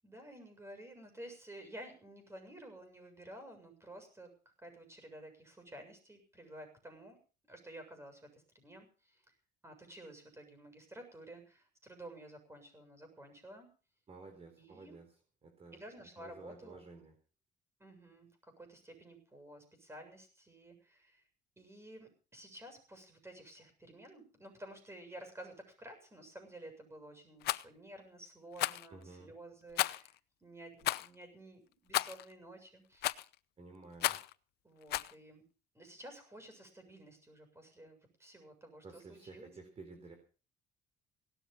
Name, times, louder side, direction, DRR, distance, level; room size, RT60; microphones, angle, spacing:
voice 1, 0.0-4.3 4.6-7.2 7.5-9.3 9.6-13.7 14.6-15.0 15.7-16.8 17.8-21.2 21.6-30.1 30.4-33.1 34.6-35.4 35.7-39.6, right 1 dB, 15° right, 7 dB, 7.2 m, -52 dB
voice 2, 14.1-15.1 15.4-15.8 16.2-17.1 28.9-29.3 33.6-34.2 38.8-40.1, right 3 dB, 35° right, 5 dB, 4.0 m, -52 dB
Rattle, 27.4-27.6 28.6-28.9 29.8-30.1 30.8-31.1 31.9-32.2 33.0-33.3 34.0-34.3 34.9-35.1, left 16 dB, 75° left, 0.7 m, -33 dB
18.0 x 12.5 x 5.5 m, 0.37 s
cardioid pair, 110°, 17 cm